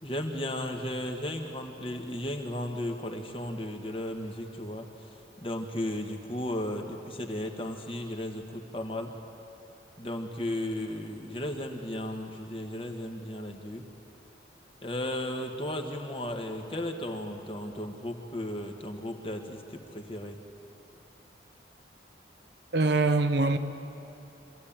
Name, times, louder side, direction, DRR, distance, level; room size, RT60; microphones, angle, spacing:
voice 1, 0.0-9.1 10.0-13.8 14.8-20.4, left 1 dB, 30° left, 4 dB, 1.5 m, -35 dB
voice 2, 22.7-23.6, right 3 dB, 60° right, 8 dB, 1.0 m, -23 dB
25.5 x 15.0 x 8.8 m, 2.9 s
head